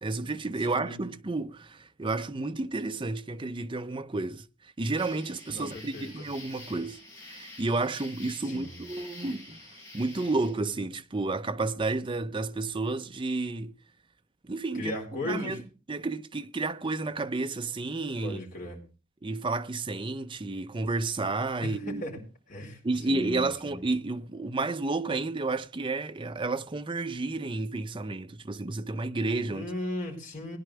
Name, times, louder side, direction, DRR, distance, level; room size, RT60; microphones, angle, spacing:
voice 1, 0.0-7.0 7.3-9.6 9.9-13.7 14.4-15.0 15.2-15.6 15.9-18.4 19.2-22.0 22.8-29.7, right 3 dB, 25° right, 0.6 m, -31 dB
sound 1, 5.0-10.5, left 2 dB, 15° left, 7.0 m, -48 dB
voice 2, 5.5-6.1 8.4-8.8 14.7-15.6 18.2-18.8 21.6-22.1 22.5-22.8 23.1-23.8 29.5-30.6, left 1 dB, 40° left, 5.1 m, -36 dB
20.0 x 10.5 x 3.3 m
head